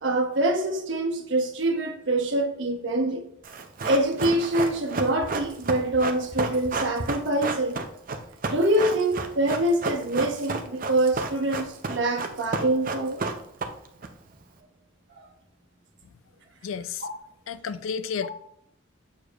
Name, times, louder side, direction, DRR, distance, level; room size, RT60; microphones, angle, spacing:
voice 1, 0.0-3.2 3.8-7.9 8.5-13.2, right 1 dB, 65° right, 1.1 m, -25 dB
Run, 3.4-14.1 14.3-14.4, right 3 dB, 45° right, 0.5 m, -31 dB
voice 2, 16.6-17.0 17.5-18.3, left 6 dB, 85° left, 0.4 m, -31 dB
6.9 x 6.4 x 2.4 m
head